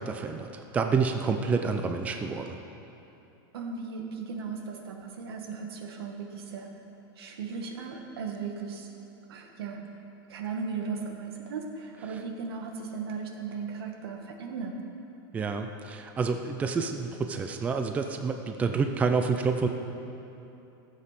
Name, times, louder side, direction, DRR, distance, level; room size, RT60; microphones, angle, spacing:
voice 1, 0.0-2.6 15.3-19.7, right 5 dB, 10° right, 5 dB, 0.4 m, -28 dB
voice 2, 3.5-6.7 7.2-8.9 9.3-9.8 10.3-14.8, right 5 dB, 85° right, 2 dB, 1.8 m, -37 dB
14.5 x 7.6 x 5.9 m, 2.9 s
supercardioid pair, 160°, 12 cm